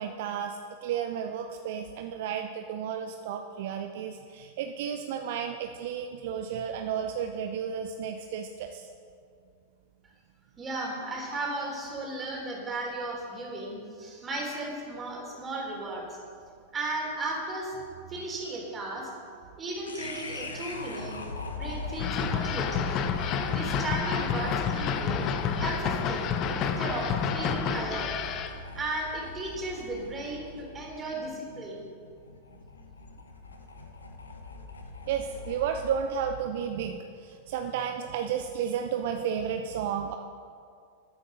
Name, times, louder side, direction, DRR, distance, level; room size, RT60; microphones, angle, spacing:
voice 1, 0.0-8.9 35.1-40.2, right 8 dB, 60° right, 5 dB, 0.7 m, -32 dB
voice 2, 10.6-16.2 16.7-17.7 18.1-19.1 19.6-21.2 21.5-23.1 23.5-25.3 25.6-28.2 28.7-31.9, right 2 dB, 25° right, -1 dB, 3.6 m, -35 dB
sound 1, 19.8-36.1, left 3 dB, 80° left, 1.2 m, -40 dB
sound 2, 22.0-28.6, left 7 dB, 40° left, 0.8 m, -29 dB
13.0 x 9.0 x 5.5 m, 2.3 s
figure-of-eight pair, 95°, 0 cm